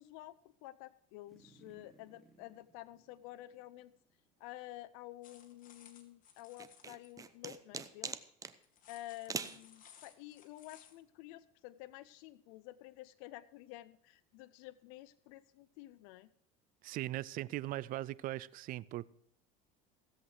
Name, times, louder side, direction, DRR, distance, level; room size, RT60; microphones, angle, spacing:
voice 1, 0.0-3.9 4.4-8.3 8.9-16.3, left 16 dB, 75° left, 15 dB, 0.5 m, -51 dB
sound 1, 1.3-4.7 5.0-5.1, right 2 dB, ahead, 2.5 m, -65 dB
sound 2, 5.2-7.1 8.6-11.0, left 8 dB, 50° left, 2.1 m, -60 dB
sound 3, 6.6-8.6 9.3-9.6, right 5 dB, 20° right, 0.8 m, -41 dB
voice 2, 16.8-19.1, right 16 dB, 50° right, 20 dB, 0.5 m, -39 dB
16.5 x 7.9 x 4.8 m, 0.73 s
supercardioid pair, 115°, 18 cm